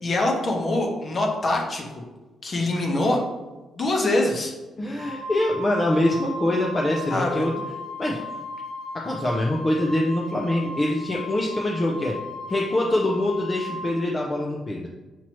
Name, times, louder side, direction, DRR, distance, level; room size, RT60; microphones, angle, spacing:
voice 1, 0.0-2.0 2.4-3.2 3.7-4.5 7.1-7.5, left 2 dB, 45° left, 0 dB, 1.0 m, -24 dB
voice 2, 4.8-7.5 8.0-8.2 8.9-12.1 12.5-14.9, left 1 dB, 25° left, -1 dB, 0.6 m, -24 dB
Wind instrument woodwind instrument, 5.0-14.0, left 2 dB, 65° right, 0.8 m, -36 dB
6.0 x 2.9 x 3.0 m, 1.1 s
cardioid pair, 85°, 0 cm